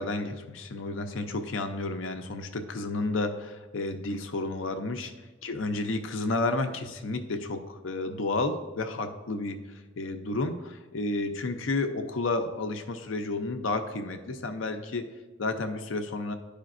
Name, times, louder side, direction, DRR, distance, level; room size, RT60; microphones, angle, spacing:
voice 1, 0.0-5.1 5.4-9.6 10.0-15.1 15.4-16.3, left 2 dB, 80° left, 6 dB, 0.6 m, -31 dB
11.5 x 5.0 x 2.5 m, 1.2 s
head